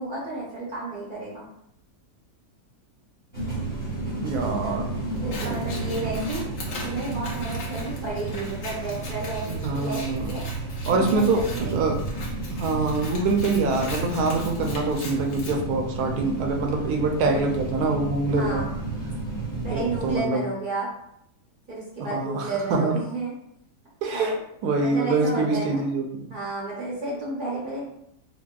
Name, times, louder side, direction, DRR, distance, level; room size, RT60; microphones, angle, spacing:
voice 1, 0.0-1.5 4.4-4.9 5.2-6.4 6.8-10.4 10.8-11.9 18.4-18.8 19.6-20.9 21.7-23.3 24.1-24.3 24.8-25.8 26.3-27.8, right 3 dB, 45° right, -6 dB, 0.7 m, -32 dB
sound 1, 3.3-20.2, right 2 dB, 10° left, 0.6 m, -32 dB
voice 2, 4.2-4.9 5.4-5.6 9.5-10.3 10.9-12.0 12.5-18.6 19.7-20.4 22.0-22.9 24.0-24.3 24.6-26.3, right 3 dB, 70° right, 3 dB, 1.0 m, -25 dB
Scissors, 5.2-15.5, left 2 dB, 55° left, 0.8 m, -40 dB
4.0 x 2.2 x 2.3 m, 0.74 s
omnidirectional pair, 1.8 m